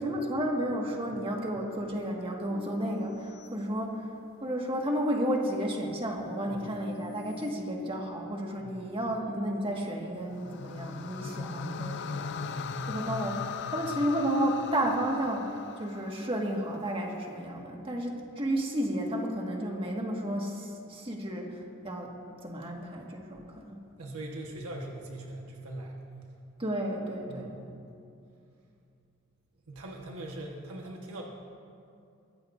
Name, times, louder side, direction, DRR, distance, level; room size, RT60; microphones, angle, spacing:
voice 1, 0.0-4.1 4.4-12.4 12.9-23.8 26.6-27.5, right 1 dB, 25° right, 0 dB, 1.8 m, -32 dB
sound 1, 2.5-4.4 5.0-7.5, left 2 dB, 70° left, 2.8 m, -50 dB
voice 2, 8.6-8.9 12.3-12.8 24.0-25.9 27.3-27.7 29.7-31.2, right 1 dB, 90° right, -1 dB, 1.3 m, -41 dB
sound 2, 10.3-16.6, left 6 dB, 55° left, 0.5 m, -38 dB
22.5 x 15.5 x 2.6 m, 2.5 s
head